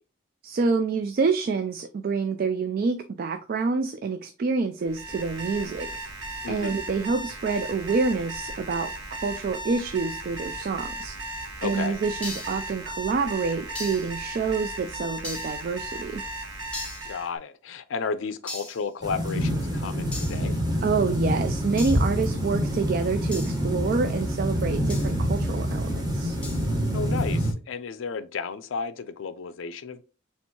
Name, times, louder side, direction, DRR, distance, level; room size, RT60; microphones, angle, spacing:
voice 1, 0.4-5.9 6.5-11.1 11.6-16.2 20.8-26.4, right 4 dB, 45° right, 0.3 m, -27 dB
Alarm, 4.8-17.3, right 2 dB, 70° right, 1.0 m, -36 dB
voice 2, 6.4-6.8 11.6-12.0 17.0-20.6 26.9-30.0, left 5 dB, 80° left, 0.4 m, -33 dB
sound 1, 12.2-12.7 13.7-14.2 15.2-15.6 16.7-17.1 18.5-18.9 20.1-20.5 21.8-22.1 23.3-23.6 24.9-25.2 26.4-26.7, left 2 dB, 5° left, 0.7 m, -38 dB
sound 2, 19.0-27.5, equal, 20° right, 1.0 m, -26 dB
4.4 x 3.5 x 2.8 m
head